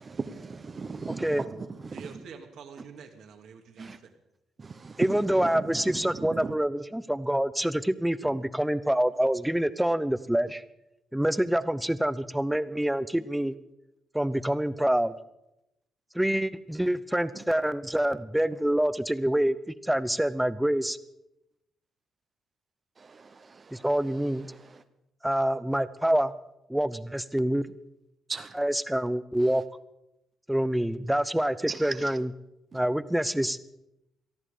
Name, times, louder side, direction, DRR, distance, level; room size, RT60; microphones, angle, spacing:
voice 1, 0.0-2.2 2.8-2.9 3.8-4.0 4.6-6.6 8.2-8.4 17.3-17.4 18.5-18.6 23.0-24.8 28.3-28.6 29.4-29.6 31.7-32.2 32.7-32.8, right 4 dB, 35° right, 0.9 m, -38 dB
voice 2, 1.9-4.1, right 6 dB, 70° right, 2.1 m, -46 dB
voice 3, 5.0-10.6 11.1-13.5 14.1-15.1 16.1-19.6 19.8-21.0 23.7-24.5 25.2-26.3 26.7-27.6 28.6-29.6 30.5-32.3 32.7-33.6, right 1 dB, 5° right, 0.7 m, -26 dB
18.5 x 13.5 x 5.0 m
cardioid pair, 90°, 0 cm